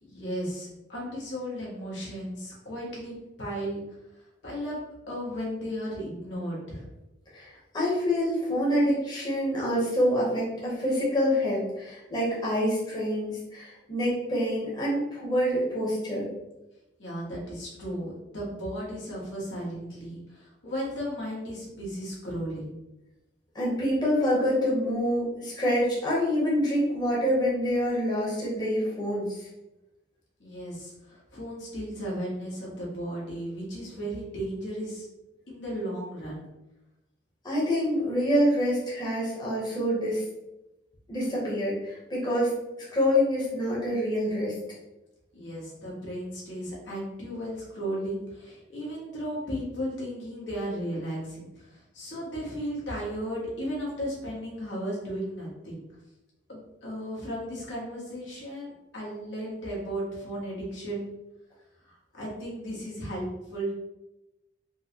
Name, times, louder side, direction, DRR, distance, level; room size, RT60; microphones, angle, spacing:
voice 1, 0.0-3.8 4.4-4.8 5.1-6.9 17.0-22.8 30.4-35.1 35.5-36.5 45.3-55.8 56.5-61.1 61.9-63.7, equal, 80° left, -5 dB, 1.3 m, -35 dB
voice 2, 7.3-16.3 23.5-29.5 37.4-40.2 41.1-42.5 42.9-44.6, equal, 25° left, -6 dB, 1.0 m, -26 dB
4.4 x 2.1 x 2.9 m, 0.96 s
head